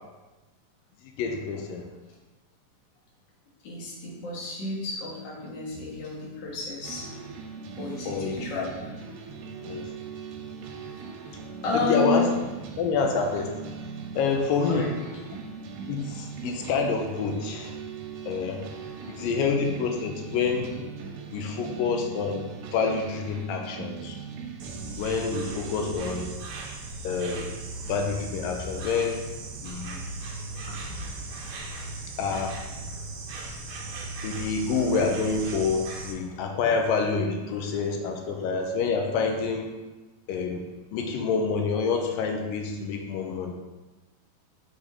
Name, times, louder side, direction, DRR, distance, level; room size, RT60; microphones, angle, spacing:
voice 1, 1.2-1.9 8.1-8.7 9.6-9.9 11.7-12.3 12.8-13.7 14.2-14.9 15.9-17.7 18.3-18.7 19.1-20.7 21.3-22.4 22.7-24.2 25.0-26.3 27.0-27.5 27.9-29.2 29.6-30.0 32.2-32.5 34.2-39.7 40.3-40.6 40.9-43.5, left 5 dB, 85° left, 3 dB, 2.3 m, -27 dB
voice 2, 3.6-7.1 7.8-8.7 10.4-10.5 11.6-12.2 14.6-15.2 19.2-19.6 30.7-30.8, left 3 dB, 55° left, -3 dB, 1.2 m, -32 dB
sound 1, 6.8-26.3, right 6 dB, 90° right, 2.4 m, -39 dB
Insect, 24.6-36.1, right 2 dB, 70° right, 2.2 m, -37 dB
6.3 x 5.4 x 3.6 m, 1.2 s
omnidirectional pair, 4.0 m